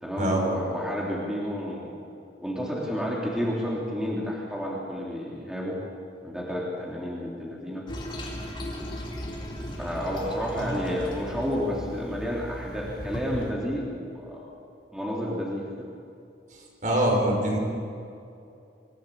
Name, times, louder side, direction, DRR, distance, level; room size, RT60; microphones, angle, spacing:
voice 1, 0.0-1.9 2.4-5.8 6.2-7.9 9.8-14.5 14.9-15.9, equal, 5° right, -4 dB, 3.4 m, -31 dB
Toilet flush, 7.9-13.5, equal, 30° left, 4.0 m, -36 dB
voice 2, 16.8-17.6, right 1 dB, 45° right, 0 dB, 5.4 m, -24 dB
26.0 x 16.5 x 8.8 m, 2.5 s
head